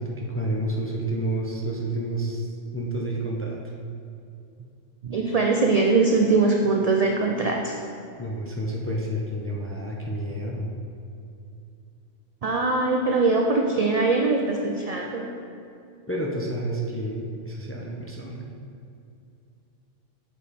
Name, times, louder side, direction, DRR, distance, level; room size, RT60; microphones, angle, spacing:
voice 1, 0.0-2.5 2.7-3.6 8.2-10.7 16.1-18.6, right 1 dB, 20° left, -2 dB, 0.4 m, -29 dB
voice 2, 5.0-7.8 12.4-15.3, right 3 dB, 65° right, 1 dB, 0.3 m, -22 dB
7.3 x 5.1 x 4.1 m, 2.5 s
omnidirectional pair, 1.3 m